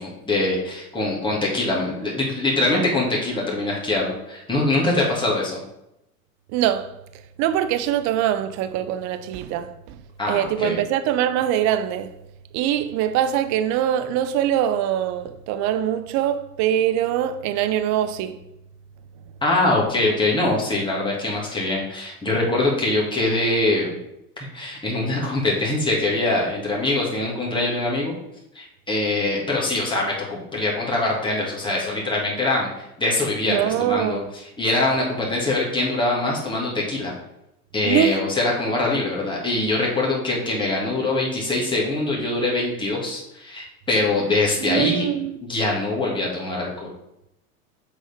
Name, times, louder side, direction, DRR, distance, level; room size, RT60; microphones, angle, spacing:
voice 1, 0.0-5.6 10.2-10.8 19.4-24.0 24.5-28.1 28.5-32.7 33.0-34.2 34.6-37.1 37.7-45.1 45.4-46.9, left 2 dB, 10° left, 2.0 m, -23 dB
voice 2, 6.5-6.9 7.4-10.0 10.3-12.1 12.5-18.4 33.4-34.2 37.8-38.2 44.6-45.4, right 11 dB, 40° right, 0.6 m, -23 dB
6.6 x 3.8 x 5.1 m
hypercardioid pair, 95°, 46 cm